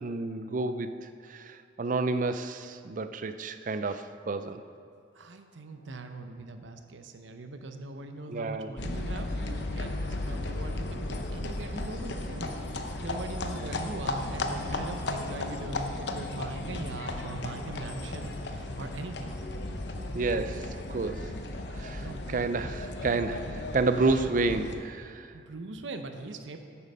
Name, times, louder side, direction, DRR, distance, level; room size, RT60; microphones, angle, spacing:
voice 1, 0.0-4.6 8.3-8.7 13.5-13.8 20.1-21.3 21.8-25.3, right 3 dB, 40° right, 11 dB, 0.4 m, -30 dB
voice 2, 5.1-19.3 22.0-22.4 25.3-26.6, right 2 dB, 75° right, 7 dB, 0.8 m, -41 dB
sound 1, 8.8-24.8, left 2 dB, 65° left, 0.8 m, -35 dB
9.2 x 8.7 x 5.5 m, 2.4 s
head